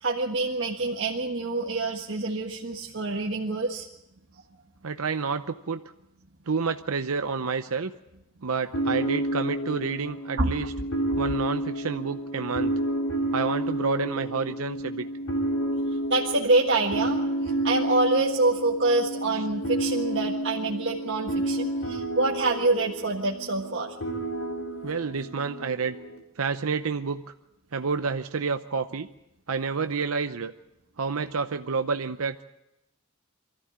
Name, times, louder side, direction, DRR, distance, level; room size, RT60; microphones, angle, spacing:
voice 1, 0.0-3.9 10.4-10.5 11.1-11.2 16.1-17.2 17.6-23.9, right 2 dB, 55° right, -2 dB, 1.6 m, -26 dB
voice 2, 4.8-5.8 6.5-7.9 8.4-10.7 11.2-12.7 13.3-15.1 19.3-19.4 24.8-25.9 26.4-27.2 27.7-29.1 29.5-30.5 31.0-32.4, right 5 dB, 80° right, 8 dB, 0.7 m, -29 dB
sound 1, 8.7-26.2, right 1 dB, 80° left, 3.3 m, -30 dB
24.0 x 14.5 x 8.7 m, 0.89 s
head